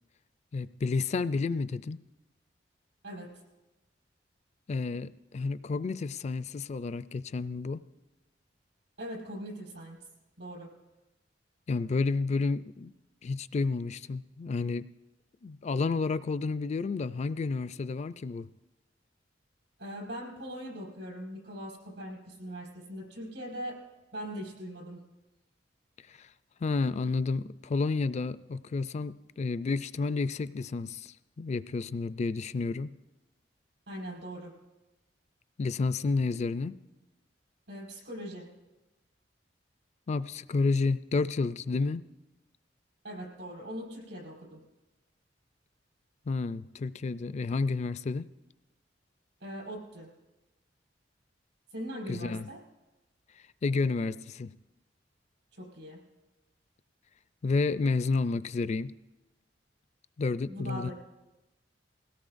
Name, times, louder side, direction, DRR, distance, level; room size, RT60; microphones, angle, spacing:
voice 1, 0.5-2.0 4.7-7.8 11.7-12.9 13.2-14.9 15.4-18.5 26.1-26.3 26.6-32.9 35.6-36.8 40.1-42.0 46.3-48.3 52.1-52.5 53.6-54.5 57.4-58.9 60.2-60.9, left 4 dB, 40° left, 15 dB, 0.3 m, -30 dB
voice 2, 9.0-10.0 10.4-10.7 19.8-23.8 24.1-25.0 33.9-34.5 37.7-38.5 43.0-44.6 49.4-50.1 51.7-52.6 55.5-56.0 60.5-60.9, equal, 80° right, -2 dB, 4.9 m, -40 dB
20.5 x 17.0 x 2.5 m, 1.0 s
head